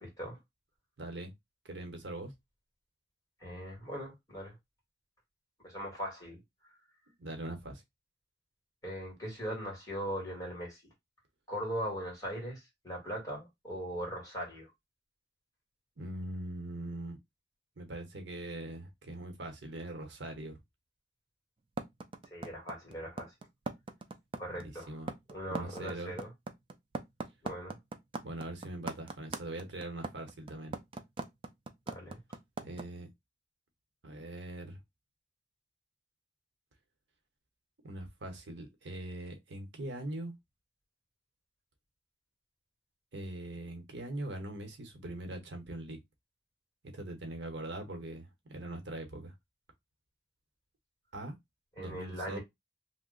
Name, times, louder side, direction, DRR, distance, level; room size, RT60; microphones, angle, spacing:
voice 1, 0.0-0.4 3.4-4.5 5.6-6.4 8.8-10.8 11.5-14.7 22.3-23.3 24.4-24.9 25.3-26.3 27.4-27.8 31.9-32.2 51.8-52.4, equal, 20° left, 1.7 m, -39 dB
voice 2, 1.0-1.3 1.6-2.3 7.1-7.8 16.0-17.2 17.8-20.6 24.5-25.1 25.4-26.2 28.2-30.8 32.6-33.1 34.0-34.8 37.8-40.3 43.1-46.0 46.8-49.3 51.1-51.3 51.8-52.4, right 1 dB, 75° right, 0.9 m, -42 dB
sound 1, 21.8-32.8, right 3 dB, 30° right, 0.4 m, -39 dB
2.7 x 2.1 x 3.7 m
head